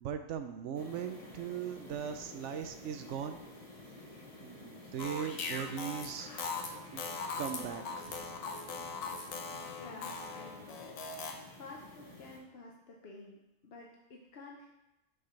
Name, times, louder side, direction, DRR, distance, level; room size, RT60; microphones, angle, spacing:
voice 1, 0.0-3.4 4.4-7.0 7.4-8.3, right 8 dB, 70° right, 8 dB, 0.8 m, -39 dB
sound 1, 0.7-12.4, left 2 dB, 30° left, 1.2 m, -51 dB
sound 2, 5.0-11.3, left 4 dB, 80° left, 1.2 m, -40 dB
voice 2, 9.4-11.0 11.6-14.7, left 3 dB, 55° left, 0 dB, 0.9 m, -51 dB
6.6 x 4.8 x 5.7 m, 0.96 s
omnidirectional pair, 1.4 m